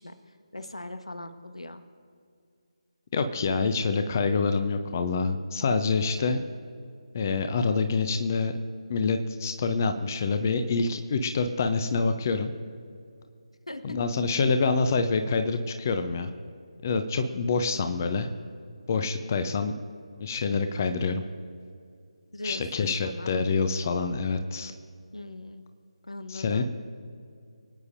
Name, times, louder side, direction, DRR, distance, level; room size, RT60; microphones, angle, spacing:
voice 1, 0.0-1.8 13.7-14.0 17.6-18.1 22.3-22.6 23.0-23.3 25.1-25.6 26.0-26.6, left 2 dB, 75° left, 8 dB, 1.4 m, -40 dB
voice 2, 3.1-6.4 7.1-8.5 8.9-12.5 13.8-16.3 16.8-18.3 18.9-19.7 20.2-21.2 22.4-24.7 26.3-26.6, left 4 dB, 30° left, 8 dB, 0.7 m, -26 dB
25.5 x 9.6 x 2.7 m, 2.3 s
figure-of-eight pair, 155°, 3 cm